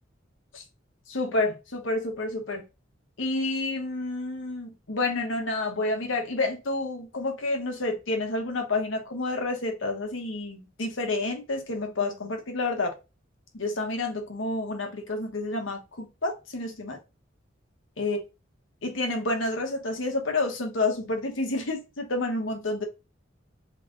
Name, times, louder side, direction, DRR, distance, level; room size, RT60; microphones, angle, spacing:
voice 1, 1.1-2.6 3.2-12.9 13.5-17.0 18.0-18.2 18.8-22.8, left 2 dB, 75° left, 1.2 m, -29 dB
3.7 x 3.3 x 3.6 m
head